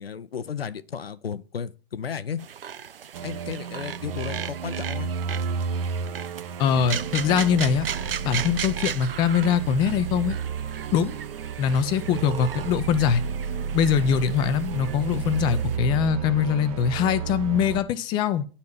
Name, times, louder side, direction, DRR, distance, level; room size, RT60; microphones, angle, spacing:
voice 1, 0.0-2.4 3.2-5.1, left 7 dB, 75° left, 0.9 m, -34 dB
sound 1, 2.4-15.8, right 8 dB, 70° right, 0.7 m, -37 dB
sound 2, 3.1-17.8, right 6 dB, 40° right, 0.8 m, -32 dB
voice 2, 6.6-7.9 8.2-10.4 10.9-11.2 11.6-13.2 13.7-18.5, left 7 dB, 15° left, 0.5 m, -22 dB
9.4 x 4.1 x 7.1 m
figure-of-eight pair, 130°, 30 cm